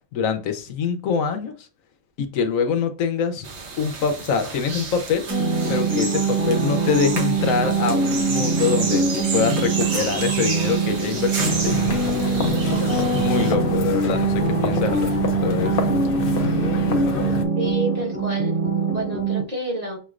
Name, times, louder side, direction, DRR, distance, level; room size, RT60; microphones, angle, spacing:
voice 1, 0.1-1.7 2.2-3.5 3.8-5.3 5.7-11.7 12.8-15.1 15.4-15.7, left 6 dB, 90° left, 7 dB, 1.2 m, -24 dB
sound 1, 3.4-13.5, right 4 dB, 60° right, 1.2 m, -31 dB
sound 2, 5.3-19.4, right 4 dB, 10° right, 1.1 m, -23 dB
sound 3, 11.4-17.4, left 5 dB, 50° left, 0.8 m, -27 dB
voice 2, 17.5-20.0, right 1 dB, 30° right, -2 dB, 1.3 m, -29 dB
6.3 x 3.1 x 2.4 m, 0.36 s
omnidirectional pair, 1.4 m